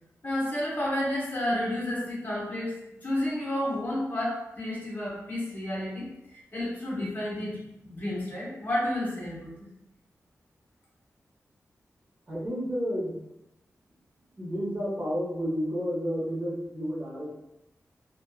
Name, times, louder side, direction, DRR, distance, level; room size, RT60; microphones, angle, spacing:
voice 1, 0.2-2.7 3.0-6.1 6.3-9.6, left 1 dB, 35° left, -5 dB, 0.8 m, -31 dB
voice 2, 12.3-13.2 14.4-17.3, equal, 25° right, -7 dB, 1.0 m, -31 dB
2.5 x 2.2 x 2.3 m, 0.90 s
wide cardioid pair, 125°, 5 cm